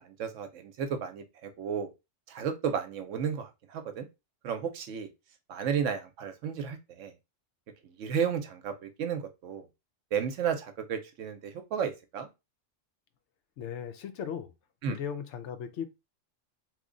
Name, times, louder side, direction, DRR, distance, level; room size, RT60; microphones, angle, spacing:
voice 1, 0.2-1.9 2.3-4.1 4.4-5.1 5.5-7.1 8.0-9.6 10.1-12.3 14.8-15.0, right 7 dB, 85° right, 1.0 m, -33 dB
voice 2, 13.6-14.5 14.9-15.9, left 8 dB, 70° left, 0.9 m, -37 dB
2.9 x 2.1 x 3.8 m
omnidirectional pair, 1.3 m